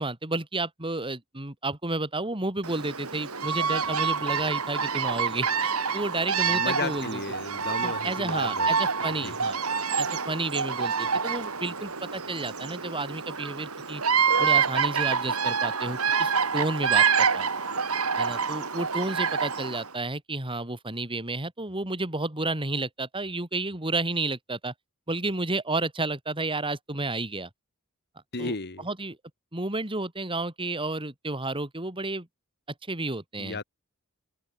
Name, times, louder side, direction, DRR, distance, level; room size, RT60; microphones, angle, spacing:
voice 1, 0.0-7.2 7.8-9.6 10.0-14.0 14.4-17.5 18.2-24.7 25.1-27.5 28.4-28.6 28.8-29.2 29.5-32.3 32.9-33.6, right 2 dB, 25° right, 3.4 m, -31 dB
Bird vocalization bird call bird song, 2.6-19.9, right 6 dB, 75° right, 4.1 m, -27 dB
voice 2, 6.5-8.7 9.2-9.3 28.3-28.9 33.4-33.6, left 3 dB, 50° left, 2.0 m, -34 dB
head